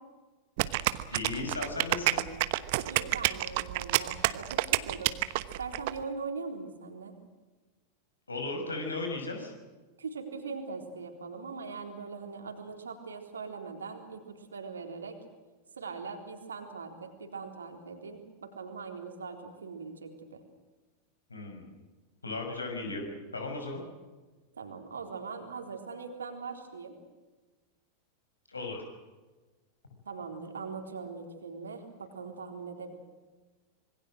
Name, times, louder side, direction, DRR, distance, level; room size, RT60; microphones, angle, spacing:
sound 1, 0.6-5.9, right 19 dB, 50° right, 1.1 m, -28 dB
voice 1, 1.1-2.3 8.3-9.5 21.3-21.7 22.2-23.0 23.3-23.8 28.5-28.8, left 3 dB, 80° left, 4 dB, 6.1 m, -36 dB
voice 2, 2.8-5.2 5.6-7.1 10.0-15.2 15.8-20.4 24.5-27.0 30.1-32.9, right 4 dB, 70° right, 4 dB, 3.8 m, -41 dB
26.0 x 23.0 x 6.4 m, 1.3 s
figure-of-eight pair, 90°, 0 cm